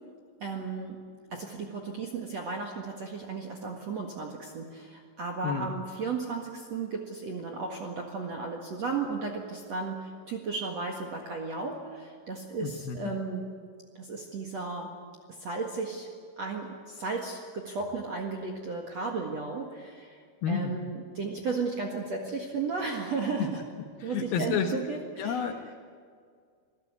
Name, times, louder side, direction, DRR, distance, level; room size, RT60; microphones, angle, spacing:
voice 1, 0.4-1.0 1.3-13.5 14.0-14.9 15.3-16.1 16.4-23.6 24.0-25.5, right 4 dB, 55° right, 1 dB, 2.0 m, -34 dB
voice 2, 12.6-13.0 20.4-20.7 24.0-24.7 25.2-25.8, left 7 dB, 65° left, 5 dB, 2.6 m, -30 dB
26.5 x 16.5 x 9.6 m, 2.1 s
omnidirectional pair, 5.4 m